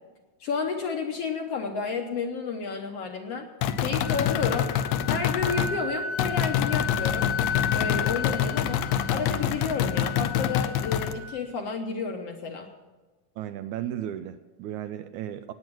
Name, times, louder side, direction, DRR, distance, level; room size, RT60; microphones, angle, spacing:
voice 1, 0.4-3.5 3.8-4.7 5.1-7.3 7.7-12.7, left 5 dB, 65° left, 3 dB, 1.7 m, -31 dB
sound 1, 3.6-5.8 6.2-11.2, left 9 dB, 85° left, 1.5 m, -26 dB
Wind instrument woodwind instrument, 3.7-11.4, left 6 dB, 45° left, 1.3 m, -34 dB
voice 2, 13.4-15.5, right 11 dB, 80° right, 10 dB, 1.8 m, -35 dB
18.5 x 9.0 x 6.1 m, 1.2 s
omnidirectional pair, 3.8 m